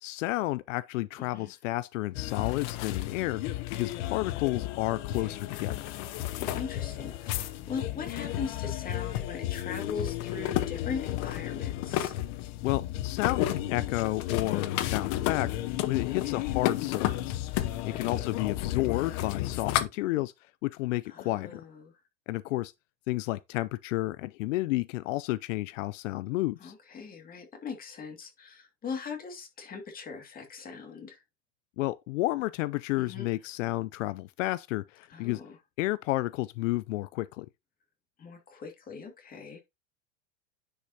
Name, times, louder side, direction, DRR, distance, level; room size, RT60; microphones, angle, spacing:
voice 1, 0.0-5.8 12.6-17.4 17.9-20.3 20.6-21.6 22.3-22.7 23.1-26.7 31.8-35.4 35.8-37.5, left 18 dB, 80° left, 0.5 m, -31 dB
voice 2, 1.2-1.5 5.1-5.4 6.2-12.1 14.3-14.6 16.2-16.5 17.8-18.2 21.1-21.9 26.6-31.2 32.9-33.3 35.1-35.6 38.2-39.6, left 5 dB, 25° left, 2.3 m, -40 dB
sound 1, 2.1-19.9, left 14 dB, 50° left, 0.9 m, -32 dB
10.0 x 5.3 x 2.8 m
supercardioid pair, 140°, 37 cm